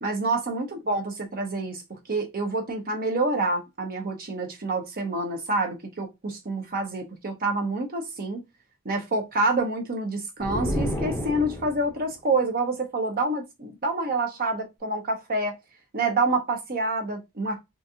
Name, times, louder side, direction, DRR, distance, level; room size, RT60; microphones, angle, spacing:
voice 1, 0.0-8.4 8.8-15.6 15.9-17.6, right 2 dB, 40° right, 0.7 m, -27 dB
sound 1, 10.4-12.0, equal, 10° left, 0.7 m, -30 dB
4.0 x 2.4 x 2.7 m
head